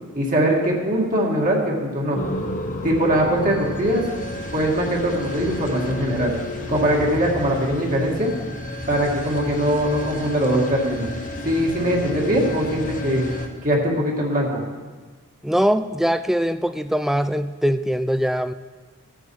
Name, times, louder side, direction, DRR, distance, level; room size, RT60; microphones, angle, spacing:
voice 1, 0.1-2.2 2.8-4.0 4.5-6.3 6.7-8.3 8.9-11.1 11.4-13.3 13.6-14.6, equal, 35° right, -2 dB, 2.1 m, -21 dB
sound 1, 2.1-13.5, left 1 dB, 35° left, 1.2 m, -31 dB
voice 2, 15.4-18.5, equal, ahead, 11 dB, 0.3 m, -22 dB
15.5 x 9.2 x 4.8 m, 1.4 s
head